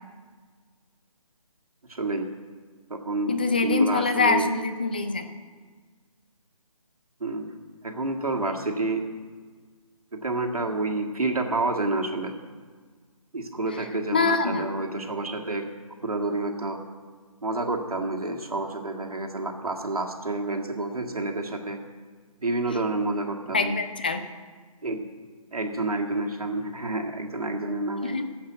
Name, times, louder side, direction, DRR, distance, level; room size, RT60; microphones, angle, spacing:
voice 1, 1.9-2.3 2.9-4.4 7.2-7.5 7.8-9.0 10.1-12.3 13.3-15.6 16.0-16.8 17.4-21.8 22.4-23.7 24.8-25.0 25.5-28.2, right 2 dB, 80° right, 3 dB, 1.8 m, -29 dB
voice 2, 3.3-5.3 14.1-14.7 23.5-24.2 28.0-28.2, left 4 dB, 15° left, 9 dB, 0.4 m, -24 dB
10.0 x 7.9 x 9.0 m, 1.5 s
figure-of-eight pair, 160°, 19 cm